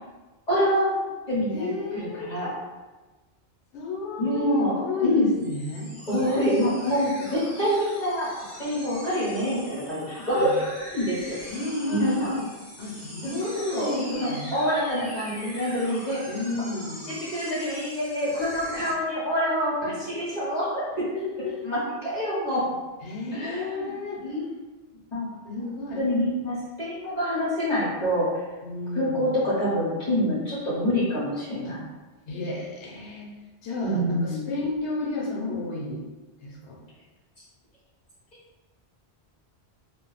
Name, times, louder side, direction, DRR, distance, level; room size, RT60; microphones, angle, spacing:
voice 1, 0.5-1.0 1.3-2.5 4.2-4.7 5.0-5.3 6.1-8.3 8.6-10.6 10.9-11.4 11.9-12.3 13.2-13.9 14.2-16.2 17.3-20.9 21.6-22.6 23.3-23.9 24.2-24.5 25.1-25.3 25.6-25.7 26.0-28.3 28.9-31.8 33.8-34.5, equal, 40° left, -10 dB, 1.0 m, -26 dB
voice 2, 1.5-2.3 3.7-5.9 10.4-10.5 11.5-12.4 12.8-14.5 16.3-17.0 19.8-20.2 21.1-21.6 23.0-24.2 25.4-26.0 28.6-29.2 31.6-31.8 32.3-33.3 33.6-36.0 36.4-36.8, left 3 dB, 85° left, -3 dB, 1.0 m, -32 dB
sound 1, 5.4-18.9, equal, 15° left, 0.7 m, -42 dB
2.4 x 2.1 x 3.9 m, 1.2 s
omnidirectional pair, 1.1 m